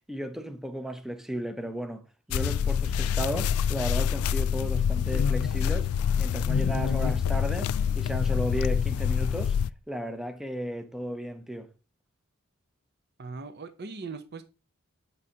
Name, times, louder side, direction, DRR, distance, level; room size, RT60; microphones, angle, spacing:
voice 1, 0.1-2.0 2.3-5.9 6.2-9.6 9.9-11.7, right 1 dB, ahead, 0.6 m, -34 dB
sound 1, 2.3-9.7, left 7 dB, 90° left, 0.3 m, -26 dB
voice 2, 13.2-14.4, right 4 dB, 50° right, 0.7 m, -39 dB
8.7 x 5.3 x 2.8 m
head